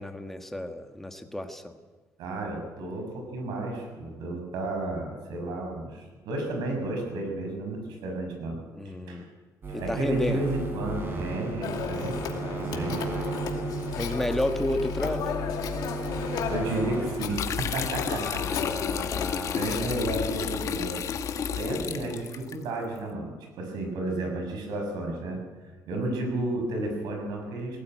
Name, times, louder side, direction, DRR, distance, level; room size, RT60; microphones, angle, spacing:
voice 1, 0.0-1.8 8.7-9.3 9.7-10.5 13.9-15.3 18.2-19.9 21.7-22.2, left 1 dB, 5° left, 6 dB, 1.4 m, -32 dB
voice 2, 2.2-8.6 9.1-9.2 9.7-13.0 16.5-18.4 19.5-21.0 21.6-25.4 25.9-27.8, right 2 dB, 80° right, 3 dB, 6.5 m, -32 dB
sound 1, 9.6-17.4, right 1 dB, 30° right, 4.2 m, -34 dB
Telephone, 11.6-20.7, left 7 dB, 70° left, 2.5 m, -36 dB
sound 2, 17.3-22.6, left 7 dB, 50° left, 1.4 m, -31 dB
19.0 x 17.0 x 9.3 m, 1.3 s
cardioid pair, 145°, 7 cm